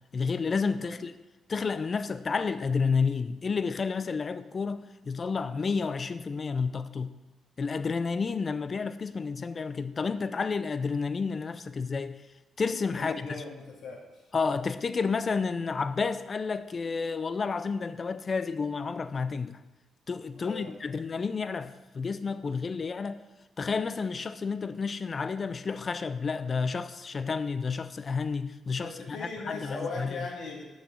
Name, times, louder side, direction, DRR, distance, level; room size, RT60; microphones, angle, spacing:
voice 1, 0.1-1.1 1.5-7.1 7.6-12.2 12.6-13.4 14.3-19.6 20.1-23.2 23.6-30.3, left 5 dB, 40° left, 0.5 m, -30 dB
voice 2, 13.0-14.0 20.4-20.9 28.8-30.6, left 3 dB, 75° left, 2.1 m, -38 dB
6.4 x 5.9 x 7.3 m
cardioid pair, 95°, 0 cm